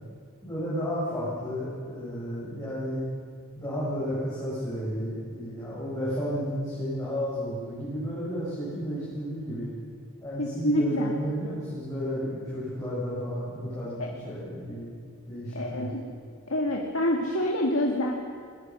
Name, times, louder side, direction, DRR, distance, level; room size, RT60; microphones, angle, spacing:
voice 1, 0.4-3.0 3.6-9.7 10.2-14.9 15.3-15.9, equal, 15° left, -10 dB, 7.6 m, -32 dB
voice 2, 10.4-11.1 14.0-14.1 15.6-16.0 16.5-18.1, left 1 dB, 70° left, -1 dB, 2.2 m, -27 dB
22.0 x 20.5 x 6.4 m, 2.3 s
head